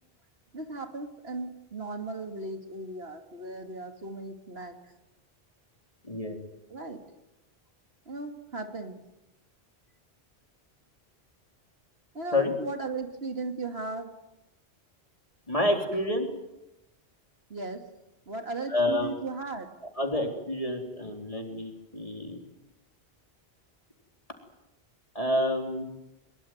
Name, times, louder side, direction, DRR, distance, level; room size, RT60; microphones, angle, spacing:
voice 1, 0.5-4.8 6.7-7.0 8.1-9.0 12.1-14.1 17.5-17.9 18.3-19.7, right 3 dB, 70° right, 6 dB, 2.7 m, -36 dB
voice 2, 6.0-6.4 12.3-12.5 15.5-16.3 18.7-19.1 20.0-22.4 25.1-25.8, left 1 dB, 35° left, 3 dB, 4.0 m, -28 dB
23.5 x 22.5 x 9.5 m, 0.92 s
omnidirectional pair, 1.1 m